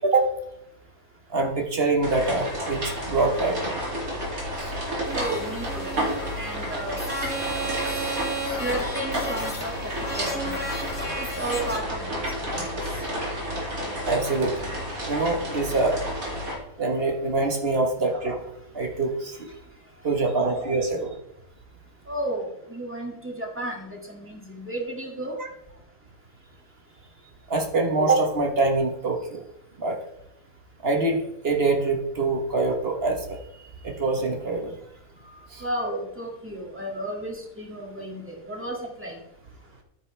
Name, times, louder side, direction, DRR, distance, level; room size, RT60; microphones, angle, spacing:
voice 1, 1.3-3.8 4.6-4.7 14.0-14.7 15.1-16.0 16.8-18.4 18.7-19.5 20.0-21.1 27.5-29.4 29.8-30.0 30.8-33.4 33.8-34.7 35.5-35.6, right 3 dB, 40° right, 3 dB, 1.3 m, -24 dB
sound 1, 2.0-16.6, equal, 60° right, 3.0 m, -31 dB
sound 2, 5.0-11.8, right 2 dB, 20° left, 3.4 m, -34 dB
voice 2, 5.1-5.9 6.3-7.3 7.8-8.2 8.5-10.7 11.2-12.8 22.1-25.4 35.6-39.2, right 1 dB, 10° right, -1 dB, 2.0 m, -33 dB
11.0 x 9.2 x 3.3 m, 0.79 s
omnidirectional pair, 1.7 m